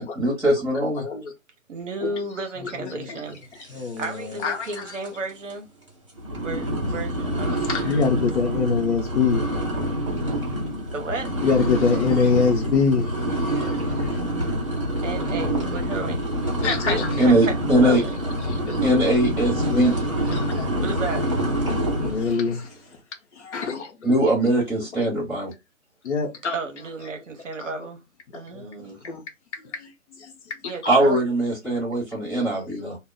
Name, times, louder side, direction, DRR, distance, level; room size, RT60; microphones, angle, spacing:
voice 1, 0.0-1.0 17.2-18.0 18.8-20.1 24.0-25.5 30.8-33.0, right 1 dB, ahead, 1.2 m, -21 dB
voice 2, 1.0-1.3 3.1-3.2 3.7-4.0 4.4-4.9 7.5-9.5 10.0-10.1 10.3-10.5 11.4-14.2 16.6-17.5 18.5-18.8 19.6-20.0 20.2-20.7 22.0-22.7 23.4-24.1 25.0-25.1 26.0-26.6 28.5-28.7 29.0-29.2 29.8-29.9 30.2-30.3 32.3-32.4 32.7-33.0, left 5 dB, 60° left, 0.6 m, -25 dB
voice 3, 1.7-3.4 3.7-5.7 6.4-7.8 10.9-11.3 15.0-16.3 16.9-18.1 20.8-21.2 26.5-28.0 28.3-29.2 30.7-31.2 31.7-31.8, right 3 dB, 65° right, 0.7 m, -33 dB
sound 1, 4.0-4.4 4.7-5.1 5.5-5.6 6.2-22.3, right 1 dB, 25° right, 0.4 m, -26 dB
2.1 x 2.0 x 3.5 m
figure-of-eight pair, 150°, 41 cm